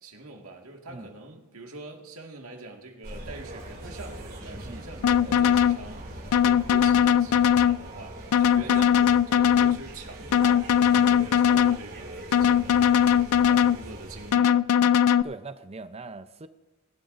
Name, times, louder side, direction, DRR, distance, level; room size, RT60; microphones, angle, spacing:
voice 1, 0.0-9.0 9.3-15.0, right 2 dB, 80° right, 1 dB, 1.9 m, -44 dB
sound 1, 3.0-14.3, right 1 dB, 45° right, 2.7 m, -41 dB
sound 2, 5.0-5.8 6.3-7.8 8.3-9.8 10.3-11.8 12.3-13.8 14.3-15.2, left 8 dB, 80° left, 0.4 m, -20 dB
voice 2, 15.2-16.5, right 3 dB, 30° right, 11 dB, 0.6 m, -41 dB
19.0 x 12.0 x 2.6 m, 1.1 s
head